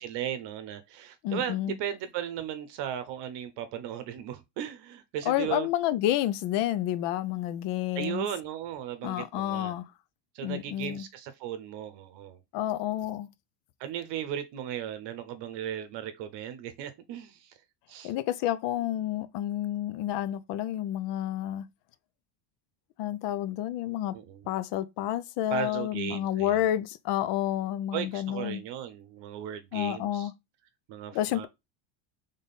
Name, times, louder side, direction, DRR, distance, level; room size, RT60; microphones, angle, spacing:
voice 1, 0.0-5.7 7.9-9.7 10.3-12.4 13.8-17.6 17.9-18.1 24.1-24.5 25.5-26.6 27.9-30.3 30.9-31.5, right 10 dB, 55° right, 0.8 m, -36 dB
voice 2, 1.2-1.8 5.3-8.3 9.0-9.9 10.4-11.0 12.5-13.3 18.0-21.7 23.0-24.2 24.5-28.6 29.7-30.3 31.1-31.5, left 12 dB, 55° left, 0.6 m, -30 dB
3.6 x 3.6 x 4.0 m
cardioid pair, 140°, 50 cm